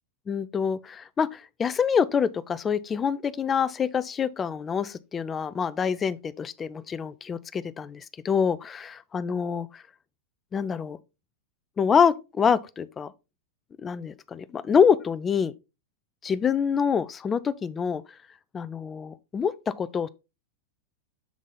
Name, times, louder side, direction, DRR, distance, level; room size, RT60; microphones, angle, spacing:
voice 1, 0.3-9.8 10.5-11.0 11.8-13.1 13.8-15.5 16.2-18.0 18.5-20.1, left 6 dB, 25° left, 0.5 m, -26 dB
7.2 x 3.6 x 3.8 m
hypercardioid pair, 100°, 0 cm